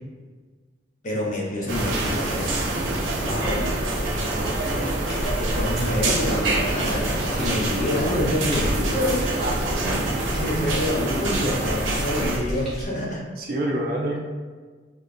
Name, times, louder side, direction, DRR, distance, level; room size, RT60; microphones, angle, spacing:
voice 1, 1.0-3.7 5.4-9.6 10.1-13.2, left 1 dB, 40° left, -4 dB, 0.7 m, -27 dB
sound 1, 1.7-12.4, right 2 dB, 80° right, 0.7 m, -25 dB
voice 2, 4.0-5.0 9.4-10.1 13.4-14.2, right 1 dB, 45° right, -1 dB, 0.4 m, -29 dB
sound 2, 5.0-12.8, equal, ahead, 1.0 m, -34 dB
5.0 x 2.5 x 2.5 m, 1.5 s
head